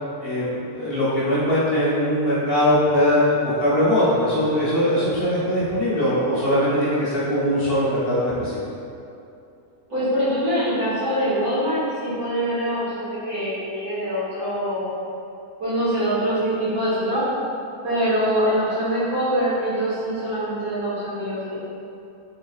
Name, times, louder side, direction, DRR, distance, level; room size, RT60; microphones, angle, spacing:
voice 1, 0.2-8.6, equal, 50° left, -9 dB, 0.9 m, -21 dB
voice 2, 9.9-14.9 15.6-17.2 17.8-21.5, equal, 85° right, -13 dB, 2.2 m, -24 dB
4.0 x 3.7 x 2.3 m, 2.7 s
omnidirectional pair, 1.6 m